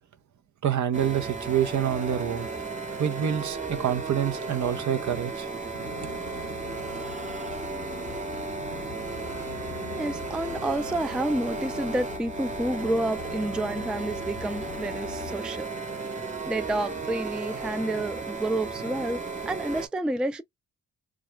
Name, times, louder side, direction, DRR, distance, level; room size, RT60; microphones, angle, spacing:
voice 1, 0.6-2.5 3.0-5.5, right 9 dB, 60° right, 0.7 m, -27 dB
sound 1, 0.9-19.9, right 3 dB, 25° right, 0.8 m, -34 dB
sound 2, 5.7-15.3, left 10 dB, 65° left, 0.6 m, -43 dB
voice 2, 10.0-15.7 16.5-20.4, right 1 dB, 5° right, 0.3 m, -29 dB
2.4 x 2.2 x 3.1 m
cardioid pair, 70°, 33 cm